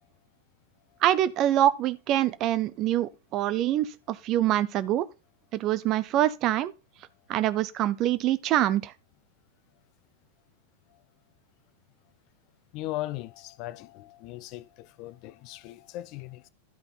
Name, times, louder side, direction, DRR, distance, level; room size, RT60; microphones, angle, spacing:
voice 1, 1.0-5.1 5.5-6.7 7.3-8.9, right 13 dB, 35° right, 0.7 m, -25 dB
voice 2, 12.7-16.5, left 16 dB, 40° left, 0.6 m, -38 dB
12.0 x 5.3 x 4.1 m
figure-of-eight pair, 90°, 0 cm